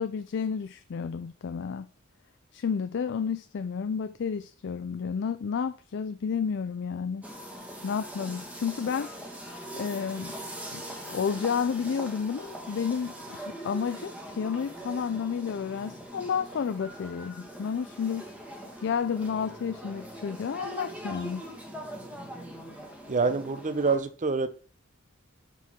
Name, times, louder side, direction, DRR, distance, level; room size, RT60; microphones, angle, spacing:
voice 1, 0.0-1.9 2.5-7.2 7.8-9.1 9.7-10.4 10.7-10.8 11.1-18.3 18.8-21.4, left 6 dB, 60° left, 0.4 m, -31 dB
sound 1, 7.2-24.0, right 1 dB, 5° right, 1.7 m, -42 dB
voice 2, 23.1-24.5, right 4 dB, 40° right, 0.7 m, -26 dB
12.0 x 4.7 x 3.7 m
head